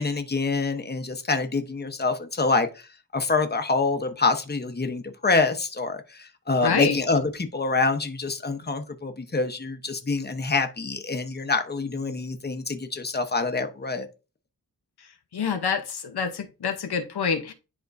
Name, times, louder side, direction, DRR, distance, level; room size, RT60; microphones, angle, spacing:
voice 1, 0.0-2.8 3.1-14.1, left 3 dB, 25° left, 0.9 m, -26 dB
voice 2, 6.6-7.0 15.3-17.5, left 6 dB, 90° left, 0.8 m, -27 dB
10.5 x 3.6 x 2.6 m
wide cardioid pair, 65°, 38 cm